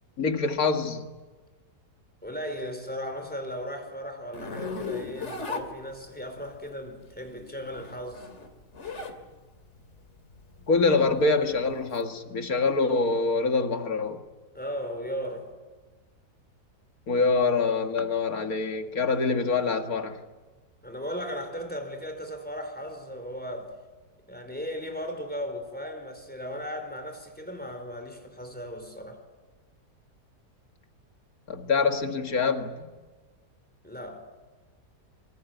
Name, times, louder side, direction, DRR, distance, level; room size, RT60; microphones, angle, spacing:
voice 1, 0.2-1.1 10.7-14.2 17.1-20.2 31.5-32.9, left 4 dB, 60° left, 2.4 m, -25 dB
voice 2, 2.2-8.3 10.6-10.7 14.5-15.6 20.8-23.7 24.3-29.2 33.8-34.2, equal, 5° left, 4.5 m, -36 dB
Zipper (clothing), 4.3-6.4 7.5-9.2 9.6-12.0, left 4 dB, 45° left, 2.8 m, -37 dB
25.5 x 24.0 x 9.4 m
omnidirectional pair, 1.8 m